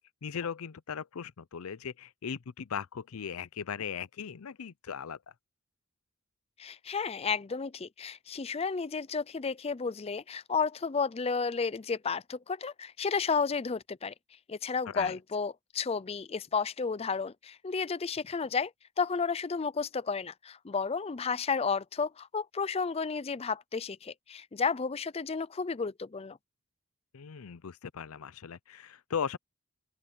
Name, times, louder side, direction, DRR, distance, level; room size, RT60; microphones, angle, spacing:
voice 1, 0.2-5.2 14.9-15.2 27.1-29.4, left 7 dB, 85° left, 0.5 m, -38 dB
voice 2, 6.6-14.1 14.5-18.7 19.0-26.4, left 5 dB, 30° left, 0.4 m, -32 dB
open air
head